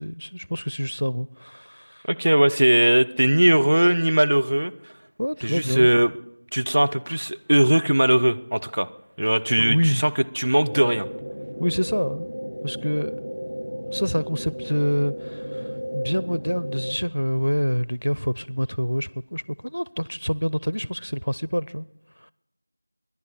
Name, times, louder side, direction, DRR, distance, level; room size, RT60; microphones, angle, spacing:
voice 1, 0.0-2.1 5.2-5.9 9.6-10.0 11.6-12.4 12.6-13.2 13.9-21.9, equal, 80° left, 0.4 m, -26 dB
voice 2, 2.1-4.9 5.4-6.1 6.5-8.9 9.2-11.1, right 1 dB, 45° right, 0.5 m, -20 dB
sound 1, 10.7-16.9, equal, 85° right, 3.7 m, -33 dB
24.0 x 10.5 x 4.2 m
figure-of-eight pair, 175°, 0 cm